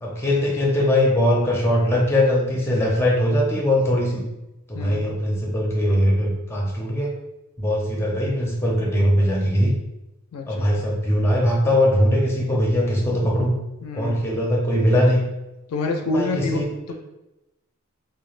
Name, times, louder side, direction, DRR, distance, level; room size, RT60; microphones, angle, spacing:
voice 1, 0.0-4.2 4.7-7.1 7.6-9.7 10.5-13.5 13.9-15.2 16.1-16.9, left 1 dB, 10° left, -2 dB, 0.5 m, -21 dB
voice 2, 4.7-5.1 10.3-10.7 13.8-14.3 15.7-16.9, left 2 dB, 75° left, 4 dB, 0.4 m, -27 dB
3.2 x 2.3 x 2.4 m, 0.95 s
head